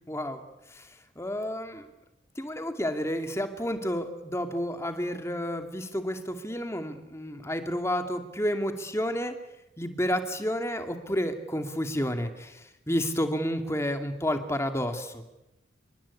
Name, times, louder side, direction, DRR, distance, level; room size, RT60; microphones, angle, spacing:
voice 1, 0.1-0.4 0.7-1.9 2.4-9.4 9.8-15.2, equal, 15° left, 6 dB, 2.4 m, -30 dB
28.5 x 24.5 x 8.6 m, 0.92 s
head